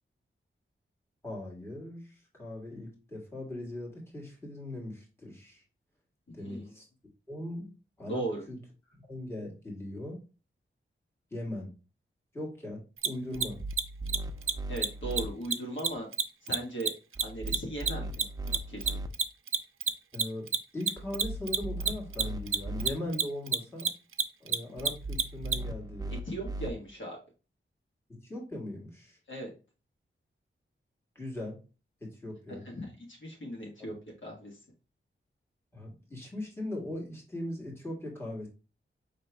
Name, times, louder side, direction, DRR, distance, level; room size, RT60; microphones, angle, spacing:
voice 1, 1.2-5.6 6.3-6.9 7.3-7.7 8.0-8.6 9.1-10.2 11.3-11.7 12.3-13.6 20.1-23.9 24.4-26.1 28.1-29.2 31.2-31.6 32.0-32.7 33.8-33.9 35.7-38.5, left 1 dB, 10° left, -2 dB, 1.7 m, -39 dB
voice 2, 6.4-6.7 8.1-8.4 14.7-16.1 16.4-16.9 17.2-18.9 26.2-27.2 29.3-29.5 32.5-33.9 34.2-34.6, right 1 dB, 65° left, -1 dB, 1.6 m, -38 dB
Mechanisms, 13.0-13.1 13.3-13.5 13.7-13.8 14.1-14.2 14.4-14.5 14.8-14.9 15.1-15.2 15.5-18.2 18.5-25.6, right 7 dB, 80° right, 0.5 m, -27 dB
sound 1, 13.3-15.3 17.2-19.1 21.0-22.9 24.8-26.7, right 1 dB, 20° right, 0.5 m, -38 dB
5.0 x 3.0 x 3.4 m, 0.33 s
wide cardioid pair, 120°, 21 cm